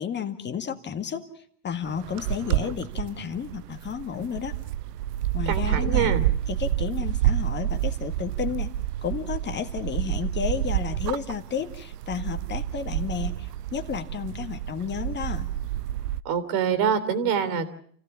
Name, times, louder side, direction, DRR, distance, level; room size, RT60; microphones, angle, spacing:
voice 1, 0.0-4.6 5.3-6.2 6.5-8.7 9.0-15.5, left 7 dB, 20° left, 6 dB, 1.9 m, -32 dB
sound 1, 1.8-16.2, right 13 dB, 75° right, 0.8 m, -29 dB
voice 2, 5.5-6.2 16.2-17.7, right 7 dB, 45° right, 12 dB, 3.3 m, -25 dB
29.0 x 15.5 x 7.1 m, 0.63 s
hypercardioid pair, 120°, 49 cm